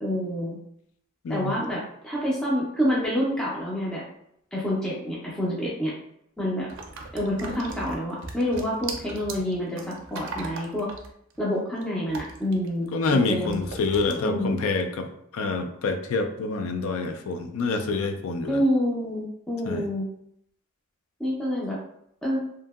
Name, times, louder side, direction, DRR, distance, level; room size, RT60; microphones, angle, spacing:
voice 1, 0.0-0.6 1.3-4.0 4.5-5.9 6.4-6.7 7.1-10.9 11.4-13.6 14.2-14.6 18.5-20.1 21.2-21.8 22.2-22.4, equal, 5° left, -6 dB, 0.4 m, -27 dB
voice 2, 1.2-1.6 12.9-15.1 15.3-18.6 19.7-19.9, left 3 dB, 70° left, 7 dB, 0.4 m, -27 dB
sound 1, 6.7-13.1 13.4-14.1, right 3 dB, 60° right, 0.5 m, -39 dB
2.7 x 2.7 x 2.3 m, 0.72 s
head